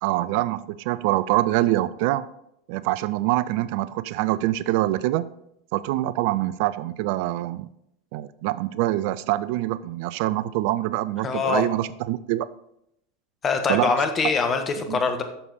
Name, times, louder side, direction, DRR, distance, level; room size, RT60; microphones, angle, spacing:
voice 1, 0.0-2.3 2.7-5.3 5.7-7.7 8.1-12.5 13.7-13.9 14.9-15.0, right 15 dB, 55° right, 16 dB, 0.3 m, -25 dB
voice 2, 11.2-11.6 13.4-15.2, left 5 dB, 30° left, 6 dB, 1.4 m, -23 dB
9.9 x 6.7 x 4.2 m, 0.78 s
figure-of-eight pair, 85°, 0 cm